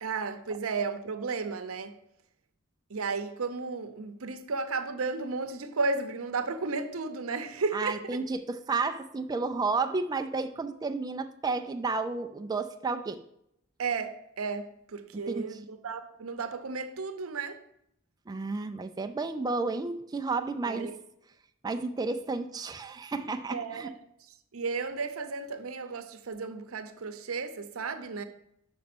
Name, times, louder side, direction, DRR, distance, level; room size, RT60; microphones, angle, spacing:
voice 1, 0.0-2.0 2.9-8.2 13.8-17.6 20.7-21.0 23.5-24.0 24.3-28.2, right 4 dB, 85° right, 0.7 m, -34 dB
voice 2, 7.7-13.2 15.3-15.6 18.3-20.9 21.6-23.9, right 3 dB, 20° right, 0.3 m, -32 dB
6.1 x 5.2 x 6.0 m
head